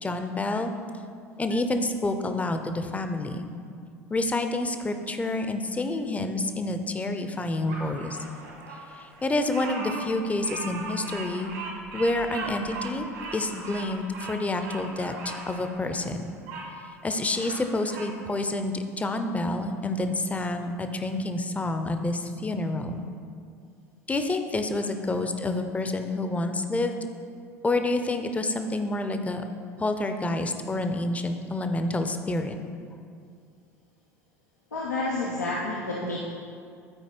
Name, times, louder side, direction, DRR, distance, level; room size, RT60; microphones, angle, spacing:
voice 1, 0.0-0.7 1.4-3.5 4.1-8.2 9.0-11.5 11.9-16.3 17.0-23.0 24.1-27.0 27.6-29.4 29.8-32.6, left 2 dB, 15° left, 7 dB, 0.7 m, -28 dB
Bird vocalization bird call bird song, 7.7-16.7 17.1-18.1, right 3 dB, 70° right, 1.9 m, -38 dB
voice 2, 34.7-36.2, left 2 dB, 85° left, -5 dB, 0.9 m, -29 dB
12.5 x 4.7 x 4.5 m, 2.3 s
figure-of-eight pair, 70°, 9 cm